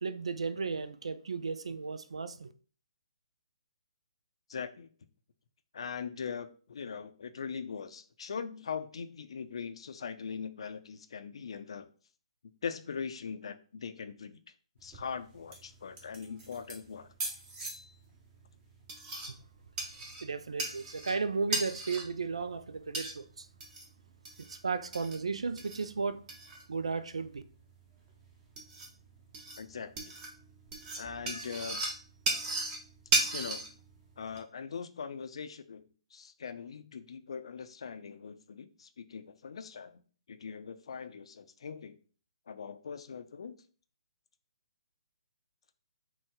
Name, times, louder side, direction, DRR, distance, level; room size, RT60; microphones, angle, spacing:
voice 1, 0.0-2.5 19.3-19.4 20.2-23.5 24.5-26.2 26.7-27.4, right 4 dB, 65° right, 0.4 m, -34 dB
voice 2, 4.5-4.9 5.7-11.9 12.6-14.4 14.8-17.1 29.6-30.1 31.0-31.8 33.3-33.6 34.2-35.8 36.1-40.0 40.3-42.0 42.5-43.6, left 6 dB, 55° left, 0.5 m, -41 dB
sound 1, 14.8-34.4, right 2 dB, 20° right, 0.9 m, -38 dB
6.1 x 2.3 x 3.6 m
figure-of-eight pair, 130°, 3 cm